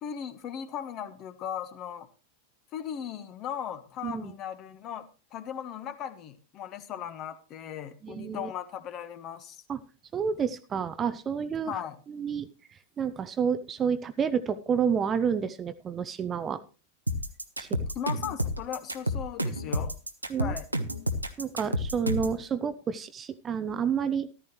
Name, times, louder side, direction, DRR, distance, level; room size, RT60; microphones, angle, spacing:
voice 1, 0.0-2.1 2.7-5.1 5.3-9.6 11.7-12.0 17.9-19.9 20.4-20.7, left 9 dB, 35° left, 11 dB, 1.4 m, -37 dB
voice 2, 4.0-4.3 8.0-8.5 9.7-9.8 10.1-11.8 12.1-12.5 13.0-16.6 17.6-17.9 20.3-20.6 21.4-24.3, right 7 dB, 25° right, 12 dB, 0.8 m, -29 dB
sound 1, 17.1-22.4, equal, 85° right, 1.1 m, -30 dB
14.0 x 13.0 x 3.1 m, 0.33 s
figure-of-eight pair, 90°, 0 cm